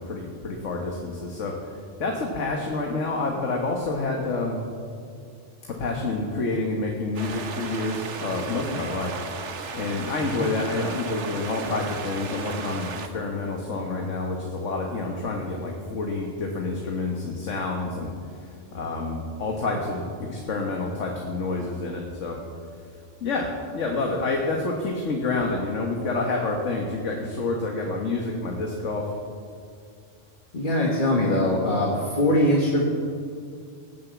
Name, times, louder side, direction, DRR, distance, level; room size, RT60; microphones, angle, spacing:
voice 1, 0.0-1.7 2.0-4.6 5.7-9.1 9.7-18.1 18.4-22.4 23.2-29.1, left 3 dB, 75° left, 1 dB, 1.7 m, -28 dB
sound 1, 7.1-13.1, right 5 dB, 70° right, 1.3 m, -35 dB
voice 2, 30.5-32.8, left 1 dB, 40° left, -2 dB, 1.9 m, -22 dB
18.0 x 7.4 x 8.3 m, 2.3 s
omnidirectional pair, 1.3 m